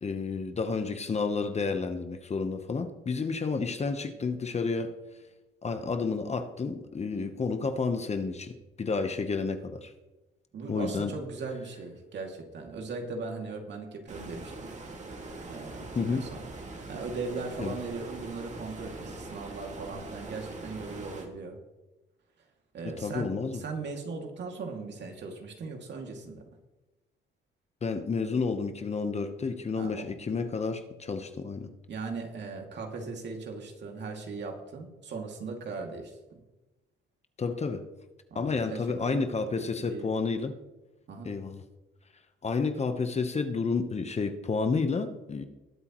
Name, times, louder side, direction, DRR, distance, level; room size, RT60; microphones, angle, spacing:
voice 1, 0.0-4.9 5.6-8.5 8.8-9.9 10.7-11.1 15.9-16.2 17.6-17.8 22.8-23.6 27.8-31.7 37.4-37.8 38.3-40.5 41.2-41.6 42.4-45.4, left 4 dB, 35° left, 8 dB, 1.0 m, -30 dB
voice 2, 10.5-14.7 15.5-16.5 16.9-21.6 22.7-26.4 29.8-30.1 31.9-36.4 38.3-40.1 41.1-41.3, right 4 dB, 60° right, 2 dB, 2.4 m, -39 dB
Stream, 14.1-21.3, right 2 dB, 35° right, 2.1 m, -42 dB
20.0 x 8.3 x 3.1 m, 1.1 s
cardioid pair, 90°, 20 cm